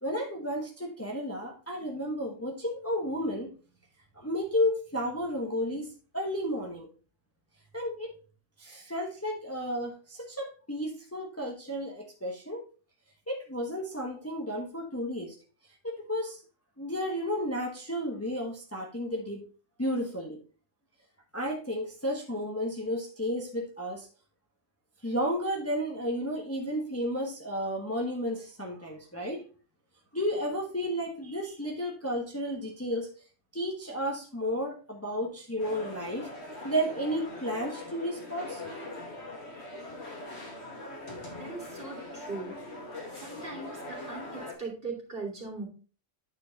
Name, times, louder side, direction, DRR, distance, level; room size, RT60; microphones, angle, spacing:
voice 1, 0.0-3.5 4.1-6.9 7.7-8.2 8.6-12.7 13.3-15.3 15.8-16.4 16.8-19.4 19.8-20.4 21.3-24.1 25.0-29.4 30.1-33.1 33.5-36.3 36.6-38.6, equal, 10° left, 0 dB, 1.1 m, -32 dB
sound 1, 35.6-44.5, left 2 dB, 60° left, 2.4 m, -42 dB
voice 2, 41.4-42.5 43.1-45.7, right 3 dB, 45° right, -1 dB, 2.8 m, -39 dB
9.2 x 4.7 x 3.9 m, 0.36 s
omnidirectional pair, 1.3 m